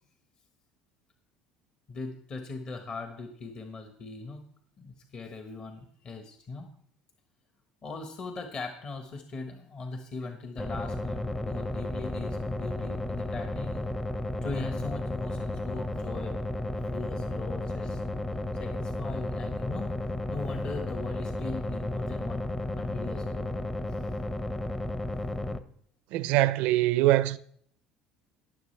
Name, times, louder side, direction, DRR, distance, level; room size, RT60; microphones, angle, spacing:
voice 1, 1.9-4.4 4.8-6.7 7.8-13.8 14.4-18.0 18.6-19.9 20.3-23.7, left 3 dB, 40° left, 1.3 m, -39 dB
sound 1, 10.6-25.6, left 1 dB, 10° left, 0.7 m, -33 dB
voice 2, 26.1-27.4, right 16 dB, 70° right, 0.5 m, -23 dB
19.0 x 7.3 x 3.3 m
supercardioid pair, 110°, 2 cm